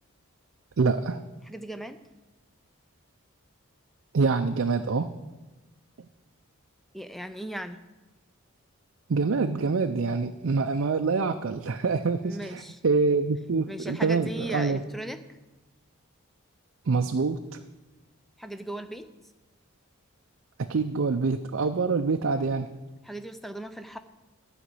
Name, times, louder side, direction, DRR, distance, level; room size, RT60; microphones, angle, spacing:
voice 1, 0.8-1.2 4.1-5.1 9.1-14.8 16.9-17.4 20.6-22.7, right 4 dB, 60° right, 6 dB, 0.5 m, -25 dB
voice 2, 1.5-2.0 6.9-7.8 12.2-12.8 13.7-15.2 18.4-19.1 23.0-24.0, right 1 dB, ahead, 9 dB, 0.5 m, -37 dB
13.0 x 5.1 x 8.2 m, 1.1 s
head